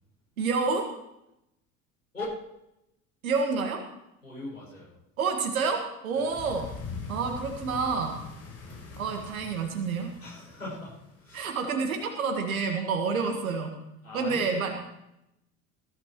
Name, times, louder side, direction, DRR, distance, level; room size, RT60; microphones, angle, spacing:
voice 1, 0.4-0.8 3.2-3.8 5.2-5.8 6.0-6.6 7.1-8.2 9.0-10.1 11.3-13.8 14.1-14.8, right 5 dB, 75° right, 4 dB, 1.8 m, -28 dB
voice 2, 4.2-4.9 6.1-6.3 8.7-8.9 10.2-11.5 14.0-14.6, left 2 dB, 90° left, -6 dB, 6.4 m, -40 dB
sound 1, 6.3-11.3, left 4 dB, 35° left, 5.1 m, -42 dB
20.0 x 12.5 x 3.1 m, 0.84 s
figure-of-eight pair, 65°, 42 cm